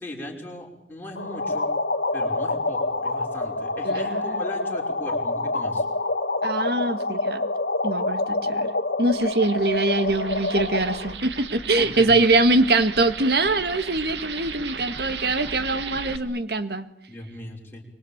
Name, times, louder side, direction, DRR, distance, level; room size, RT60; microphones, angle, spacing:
voice 1, 0.0-1.7 2.1-5.8 11.8-12.1 17.1-17.8, left 1 dB, 10° left, -1 dB, 5.6 m, -37 dB
sound 1, 1.2-11.1, left 2 dB, 70° left, 1.6 m, -27 dB
voice 2, 3.8-4.3 6.4-7.5 7.8-8.7 9.0-16.9, right 2 dB, 60° right, 11 dB, 1.8 m, -23 dB
sound 2, 9.1-16.2, right 5 dB, 85° right, 2.0 m, -36 dB
25.5 x 23.5 x 8.8 m, 0.75 s
head